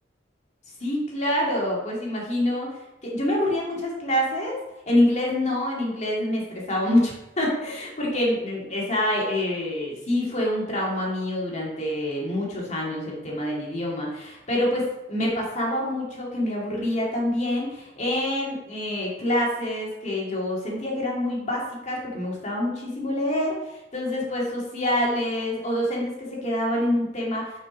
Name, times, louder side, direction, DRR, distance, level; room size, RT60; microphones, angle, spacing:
voice 1, 0.8-2.7 3.0-4.6 4.9-27.6, left 1 dB, 40° left, -3 dB, 2.2 m, -26 dB
6.0 x 5.5 x 5.1 m, 0.92 s
head